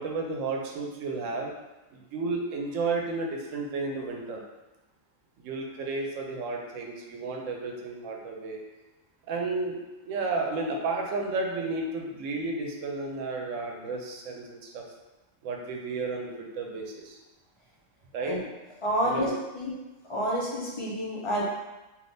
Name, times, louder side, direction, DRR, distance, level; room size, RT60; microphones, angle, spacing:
voice 1, 0.0-1.5 1.9-4.4 5.4-8.6 9.3-14.8 15.4-17.2 18.1-18.4 19.0-19.4, right 3 dB, 80° right, 0 dB, 0.9 m, -32 dB
voice 2, 18.8-19.3 19.5-19.7 20.1-21.4, equal, 35° left, -6 dB, 0.6 m, -28 dB
3.3 x 2.6 x 2.6 m, 1.1 s
omnidirectional pair, 1.3 m